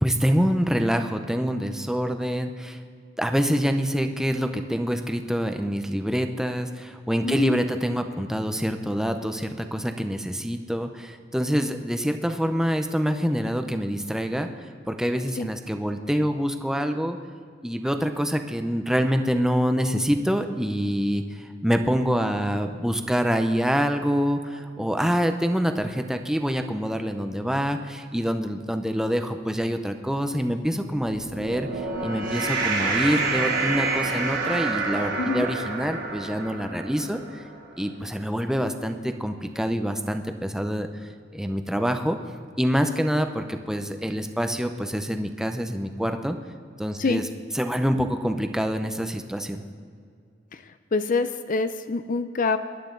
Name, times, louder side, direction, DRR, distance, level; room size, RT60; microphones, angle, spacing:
voice 1, 0.0-2.8 3.2-14.5 14.9-17.2 17.6-31.7 32.0-37.2 37.8-40.9 41.3-42.2 42.6-46.4 46.8-47.3 47.5-49.6, equal, 5° right, 6 dB, 0.7 m, -26 dB
voice 2, 7.2-7.6 15.4-15.5 35.2-35.4 47.0-47.2 50.9-52.6, left 4 dB, 45° left, 10 dB, 0.5 m, -25 dB
sound 1, 31.1-37.6, right 3 dB, 80° right, 3.1 m, -28 dB
23.0 x 11.5 x 3.9 m, 2.2 s
head